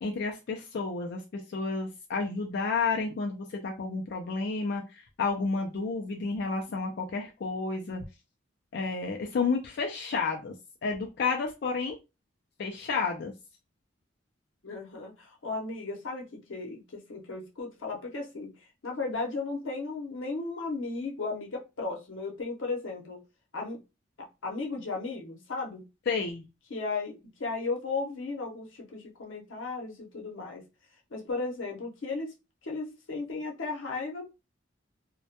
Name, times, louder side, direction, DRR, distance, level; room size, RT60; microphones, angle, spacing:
voice 1, 0.0-8.0 8.7-10.5 10.8-12.0 12.6-13.3 26.1-26.4, left 4 dB, 55° left, 0.4 m, -31 dB
voice 2, 14.6-16.2 16.5-18.5 18.8-23.2 23.5-23.8 24.4-25.8 26.7-30.6 31.1-32.3 32.6-34.4, left 3 dB, 90° left, 0.7 m, -35 dB
2.1 x 2.1 x 2.7 m
head